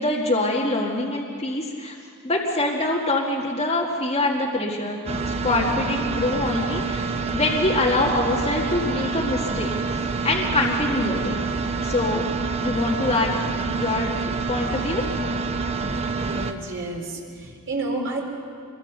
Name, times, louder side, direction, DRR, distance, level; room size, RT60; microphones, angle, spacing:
voice 1, 0.0-2.0 2.2-5.0 5.2-7.0 7.3-9.7 10.2-11.4 11.8-12.3 12.6-14.1 14.5-15.1, left 2 dB, 30° left, -3 dB, 1.9 m, -24 dB
sound 1, 5.1-16.5, right 4 dB, 30° right, 1.0 m, -27 dB
voice 2, 16.2-18.3, right 2 dB, 55° right, 0 dB, 4.2 m, -30 dB
26.0 x 22.5 x 6.7 m, 2.3 s
head